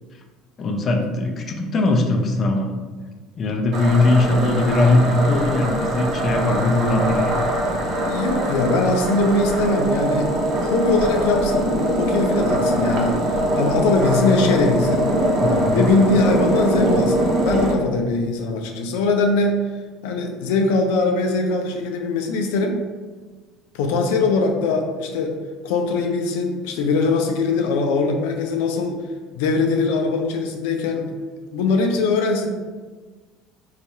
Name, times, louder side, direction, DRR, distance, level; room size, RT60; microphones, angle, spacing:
voice 1, 0.6-2.7 3.4-7.3 15.4-15.9, left 2 dB, 35° left, 3 dB, 0.5 m, -20 dB
sound 1, 3.7-17.7, right 1 dB, 55° right, 0.7 m, -22 dB
voice 2, 7.9-10.3 10.6-13.2 13.5-15.0 15.7-17.1 17.4-19.6 20.0-22.8 23.7-25.4 25.6-29.0 29.3-31.1 31.5-32.5, left 3 dB, 90° left, 3 dB, 0.4 m, -21 dB
2.7 x 2.4 x 4.2 m, 1.4 s
cardioid pair, 115°, 0 cm